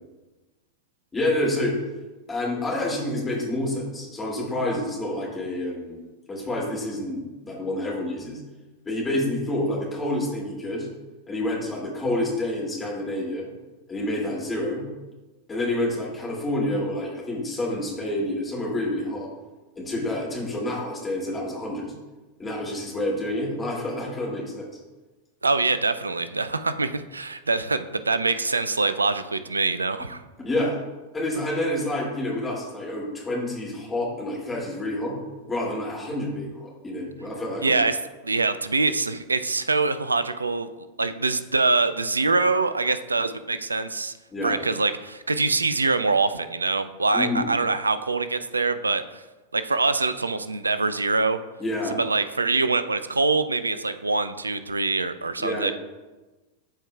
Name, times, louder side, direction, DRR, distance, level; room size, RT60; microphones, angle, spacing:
voice 1, 1.1-1.7 2.3-6.0 6.3-8.4 8.9-10.9 11.3-13.5 13.9-14.8 15.5-19.3 19.8-21.9 22.4-24.7 30.4-30.8 31.1-35.1 35.5-37.8 44.3-44.6 47.1-47.5 51.6-52.0 55.4-55.7, left 1 dB, 15° left, -4 dB, 2.5 m, -28 dB
voice 2, 25.4-30.2 37.6-38.0 38.2-40.7 41.0-44.1 44.4-49.2 49.5-51.4 52.0-55.7, right 3 dB, 80° right, 12 dB, 0.4 m, -24 dB
13.5 x 4.5 x 2.3 m, 1.2 s
figure-of-eight pair, 90°, 0 cm